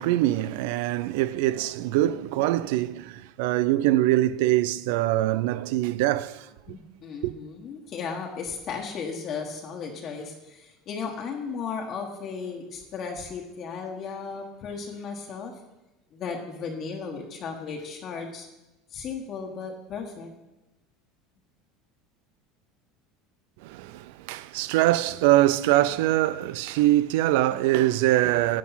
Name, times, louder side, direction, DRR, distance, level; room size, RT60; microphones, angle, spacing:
voice 1, 0.0-6.5 7.2-7.3 23.6-28.6, right 15 dB, 80° right, 0.4 m, -23 dB
voice 2, 6.7-15.5 16.1-18.5 18.9-20.3, left 5 dB, 40° left, 1.4 m, -35 dB
10.0 x 7.5 x 5.7 m
supercardioid pair, 140°, 0 cm